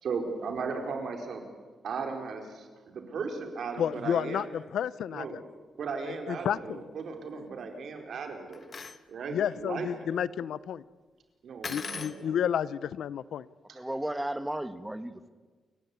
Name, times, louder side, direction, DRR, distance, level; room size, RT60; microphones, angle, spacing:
voice 1, 0.0-1.4 1.8-4.5 5.1-5.4 5.8-8.7 9.1-9.9 11.4-12.4 13.7-13.8, right 5 dB, 65° right, 4 dB, 4.5 m, -36 dB
voice 2, 3.8-5.4 6.1-6.8 7.3-7.5 9.3-10.8 11.7-13.5, left 9 dB, 80° left, 18 dB, 0.7 m, -31 dB
sound 1, 8.5-9.0 11.6-12.2, left 5 dB, 35° left, 1.3 m, -38 dB
voice 3, 13.7-15.3, right 1 dB, 5° right, 11 dB, 1.3 m, -34 dB
29.0 x 15.5 x 9.7 m, 1.4 s
wide cardioid pair, 145°, 0 cm